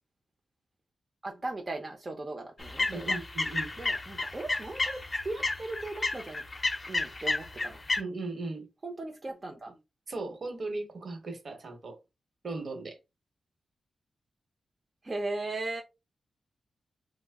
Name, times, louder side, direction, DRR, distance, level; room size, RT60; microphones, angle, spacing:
voice 1, 1.2-3.2 3.8-6.4 6.9-7.8 8.8-9.8 15.0-15.8, right 2 dB, 35° right, 0.6 m, -37 dB
sound 1, 2.6-8.0, left 2 dB, 35° left, 0.6 m, -31 dB
voice 2, 2.9-3.7 8.0-8.7 10.1-12.0 12.4-13.0, right 3 dB, 60° right, 1.0 m, -37 dB
3.1 x 2.0 x 3.5 m
cardioid pair, 85°, 0 cm